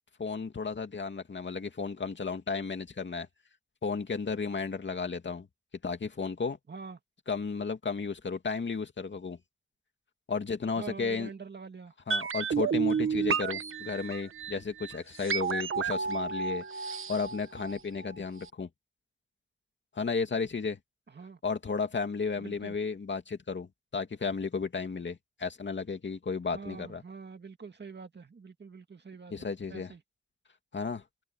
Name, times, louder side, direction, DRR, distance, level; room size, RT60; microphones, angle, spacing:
voice 1, 0.2-3.3 3.8-5.5 5.8-6.6 7.3-9.4 10.3-11.3 12.1-18.7 19.9-20.8 21.4-27.0 29.3-29.9 30.7-31.0, left 5 dB, 65° left, 2.6 m, -33 dB
voice 2, 6.7-7.0 10.7-11.9 21.1-21.4 22.4-22.8 26.5-29.3 29.7-30.0, right 5 dB, 55° right, 2.2 m, -45 dB
sound 1, 12.1-18.1 18.4-18.5, right 6 dB, 85° right, 1.3 m, -31 dB
wide cardioid pair, 85°, 21 cm